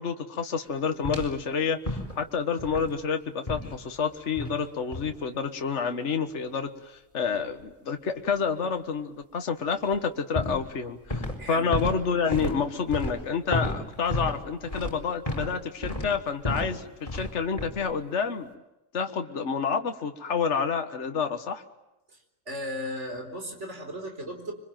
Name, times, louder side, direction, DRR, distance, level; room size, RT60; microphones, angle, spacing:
voice 1, 0.0-18.5 18.9-21.6, left 6 dB, 55° left, 7 dB, 1.8 m, -29 dB
sound 1, 1.0-1.4 1.8-2.3 2.6-3.0 3.5-3.8 4.4-4.6 4.9-5.1 9.8-10.0 10.3-11.4 11.7-15.6 15.8-16.8 17.1-17.3 17.6-17.9, left 1 dB, 25° left, 4.6 m, -32 dB
voice 2, 11.4-11.7 22.1-22.2 22.5-24.5, equal, 55° right, 4 dB, 4.5 m, -36 dB
26.0 x 24.0 x 9.1 m, 0.98 s
omnidirectional pair, 1.4 m